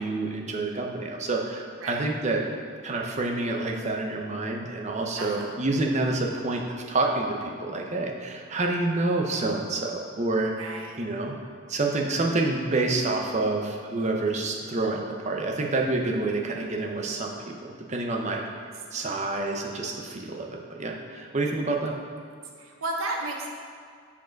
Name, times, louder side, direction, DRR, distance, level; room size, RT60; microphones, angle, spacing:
voice 1, 0.0-2.4 2.8-11.4 11.7-18.4 18.9-22.0, right 2 dB, 35° right, 0 dB, 0.7 m, -28 dB
voice 2, 5.1-5.5 8.5-8.6 10.6-11.0 22.6-23.5, right 2 dB, 80° right, 1 dB, 0.9 m, -33 dB
7.1 x 4.9 x 4.5 m, 2.2 s
head